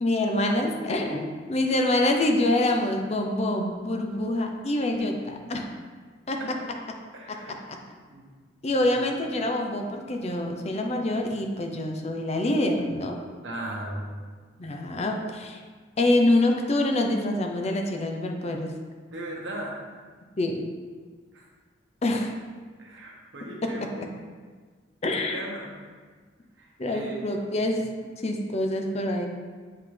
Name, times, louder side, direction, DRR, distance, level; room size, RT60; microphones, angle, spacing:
voice 1, 0.0-5.7 6.3-6.4 7.3-7.8 8.6-13.2 14.6-15.6 16.0-18.7 20.4-20.7 22.0-22.3 23.6-23.9 25.0-25.4 26.8-27.8 28.2-29.3, left 1 dB, 35° left, 3 dB, 0.5 m, -26 dB
voice 2, 7.1-7.6 8.1-8.3 8.7-9.0 13.4-14.1 19.1-19.8 21.3-21.5 22.8-24.1 25.0-25.7 26.6-27.3 27.7-27.9, right 1 dB, 75° right, -2 dB, 1.2 m, -38 dB
7.8 x 3.7 x 3.2 m, 1.5 s
head